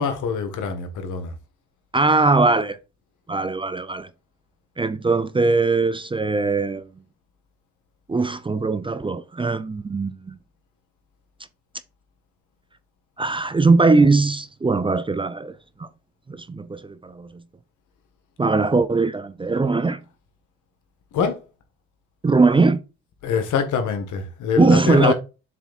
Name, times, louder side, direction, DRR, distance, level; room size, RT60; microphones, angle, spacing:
voice 1, 0.0-1.3 21.1-21.4 23.2-25.1, left 6 dB, 80° left, 1.7 m, -24 dB
voice 2, 1.9-2.8 3.3-4.1 4.8-6.9 8.1-10.3 13.2-15.9 16.3-17.4 18.4-20.0 22.2-22.8 24.6-25.1, right 3 dB, 15° right, 0.5 m, -20 dB
7.2 x 3.4 x 4.2 m
cardioid pair, 90°, 30 cm